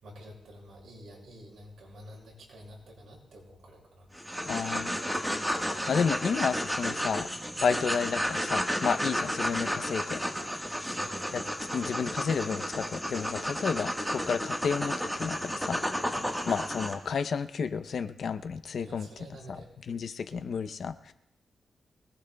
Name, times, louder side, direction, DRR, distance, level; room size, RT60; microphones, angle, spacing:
voice 1, 0.0-4.1 5.2-5.4 6.1-6.3 7.5-7.7 10.9-11.3 16.1-16.4 18.8-19.7, equal, 75° right, -1 dB, 6.3 m, -49 dB
sound 1, 4.1-16.9, equal, 5° right, 1.5 m, -32 dB
voice 2, 4.5-5.0 5.9-7.3 7.6-10.2 11.3-11.4 11.7-16.1 16.5-19.1 19.5-19.6 19.9-21.1, left 6 dB, 60° left, 10 dB, 0.7 m, -31 dB
24.5 x 19.5 x 2.3 m, 0.84 s
wide cardioid pair, 160°, 0 cm